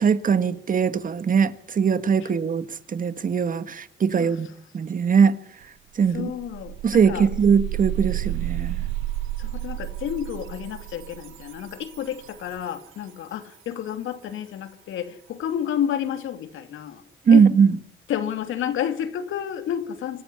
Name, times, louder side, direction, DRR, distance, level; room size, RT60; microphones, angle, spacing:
voice 1, 0.0-4.5 4.7-5.4 6.0-6.3 6.8-8.8 17.3-17.7, right 6 dB, 45° right, 1.6 m, -20 dB
sound 1, 5.6-5.7 6.0-12.8, right 15 dB, 90° right, 1.0 m, -32 dB
voice 2, 6.1-7.3 9.4-17.0 17.3-17.5 18.1-20.2, left 9 dB, 80° left, 2.8 m, -30 dB
26.0 x 13.5 x 9.9 m
cardioid pair, 90°, 20 cm